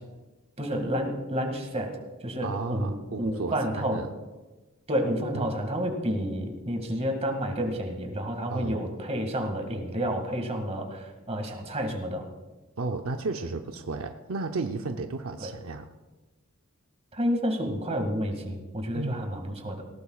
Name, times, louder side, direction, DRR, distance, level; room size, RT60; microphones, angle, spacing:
voice 1, 0.6-4.0 4.9-12.3 15.4-15.5 17.1-19.8, equal, 30° right, 3 dB, 2.1 m, -30 dB
voice 2, 2.4-4.1 5.3-5.5 8.5-8.8 12.8-15.9 18.9-19.2, right 3 dB, 75° right, 5 dB, 0.7 m, -33 dB
19.0 x 18.5 x 2.4 m, 1.2 s
head